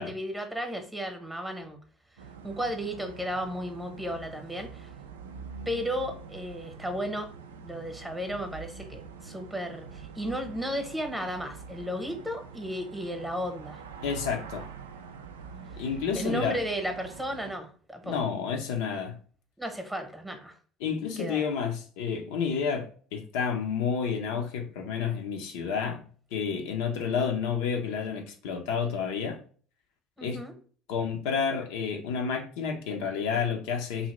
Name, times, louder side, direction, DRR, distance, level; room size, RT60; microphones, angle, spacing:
voice 1, 0.0-1.8 2.4-4.9 5.7-7.3 7.6-13.8 16.2-18.2 19.6-20.6 21.2-21.4 30.2-30.5, equal, 10° right, 0.9 m, -34 dB
sound 1, 2.2-17.6, right 5 dB, 85° right, 0.3 m, -45 dB
voice 2, 14.0-14.7 15.8-16.6 18.0-19.2 20.8-26.0 26.3-29.4 30.2-30.4 30.9-34.1, left 6 dB, 70° left, 0.5 m, -30 dB
2.7 x 2.6 x 3.0 m
hypercardioid pair, 65°, 0 cm